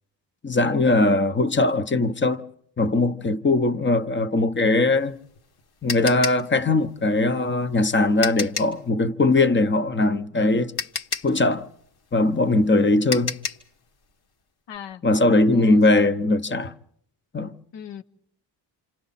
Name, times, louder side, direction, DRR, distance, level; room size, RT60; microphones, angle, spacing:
voice 1, 0.4-2.4 2.8-5.2 5.8-10.7 11.2-11.7 12.1-13.3 15.0-16.7 17.3-17.5, left 2 dB, 25° left, 0.9 m, -20 dB
sound 1, 5.0-8.8 10.3-10.4 10.8-13.7, left 6 dB, 60° left, 1.7 m, -31 dB
voice 2, 14.7-15.0 15.5-16.1 17.7-18.0, left 8 dB, 75° left, 1.2 m, -38 dB
29.0 x 27.5 x 4.1 m
cardioid pair, 125°, 44 cm